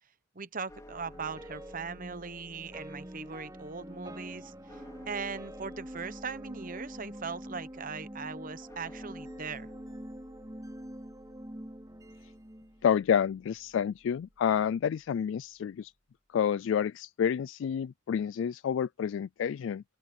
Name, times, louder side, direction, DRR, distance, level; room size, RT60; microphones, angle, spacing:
voice 1, 0.3-9.7, right 5 dB, 45° right, 1.0 m, -40 dB
sound 1, 0.7-14.9, left 1 dB, 15° left, 4.6 m, -55 dB
sound 2, 1.0-13.3, equal, 20° right, 3.9 m, -46 dB
voice 2, 12.8-15.9 16.3-19.8, left 8 dB, 70° left, 0.3 m, -29 dB
open air
head